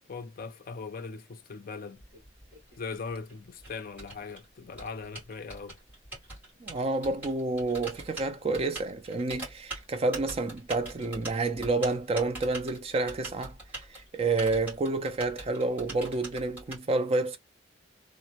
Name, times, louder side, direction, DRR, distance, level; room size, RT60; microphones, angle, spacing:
voice 1, 0.1-2.0 2.8-5.8, left 4 dB, 45° left, 0.4 m, -40 dB
Typing, 1.9-16.8, right 2 dB, 10° right, 1.9 m, -43 dB
voice 2, 6.6-13.6 13.9-17.4, right 3 dB, 30° right, 0.4 m, -29 dB
3.2 x 2.0 x 2.8 m
head